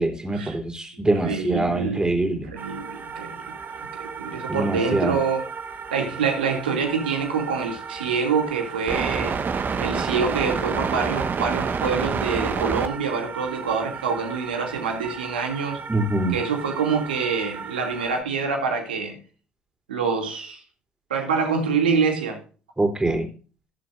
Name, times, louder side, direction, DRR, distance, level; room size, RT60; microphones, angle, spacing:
voice 1, 0.0-2.5 4.5-5.2 15.9-16.4 22.8-23.3, right 2 dB, 15° right, 3.5 m, -24 dB
voice 2, 1.2-2.1 2.5-3.5 3.9-5.4 5.9-9.4 9.8-15.8 16.3-19.1 19.9-20.6 21.1-22.4, right 5 dB, 85° right, 2.5 m, -26 dB
sound 1, 2.6-18.2, right 5 dB, 40° right, 1.4 m, -31 dB
18.5 x 7.5 x 2.6 m
hypercardioid pair, 55°, 5 cm